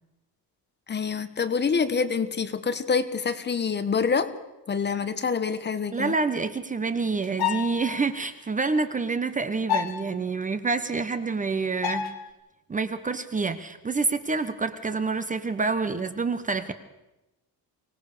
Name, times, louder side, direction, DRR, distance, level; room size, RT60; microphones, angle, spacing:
voice 1, 0.9-4.3 4.7-6.1, left 5 dB, 25° left, 11 dB, 1.3 m, -26 dB
voice 2, 5.9-12.1 12.7-16.7, right 4 dB, 20° right, 11 dB, 1.0 m, -27 dB
sound 1, 7.2-8.0 9.7-10.0 11.8-12.3, left 10 dB, 70° left, 1.8 m, -28 dB
24.5 x 19.0 x 6.7 m, 0.98 s
cardioid pair, 160°, 39 cm